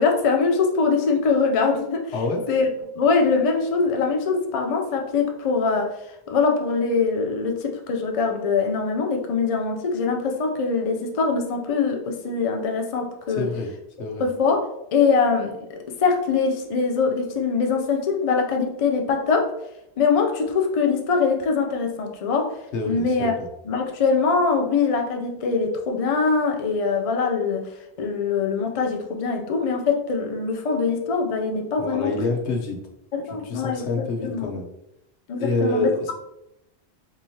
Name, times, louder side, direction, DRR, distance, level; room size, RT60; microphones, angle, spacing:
voice 1, 0.0-2.1 2.5-2.7 2.9-13.5 14.2-19.5 20.0-22.6 22.9-23.3 23.7-27.7 28.0-32.1 33.1-34.5 35.3-36.1, left 4 dB, 50° left, 3 dB, 0.4 m, -23 dB
voice 2, 2.1-2.4 13.4-13.7 14.0-14.2 22.7-23.5 31.8-32.8 33.3-34.7 35.4-36.1, left 2 dB, 80° left, 2 dB, 1.0 m, -27 dB
3.6 x 2.9 x 2.7 m, 0.85 s
omnidirectional pair, 1.1 m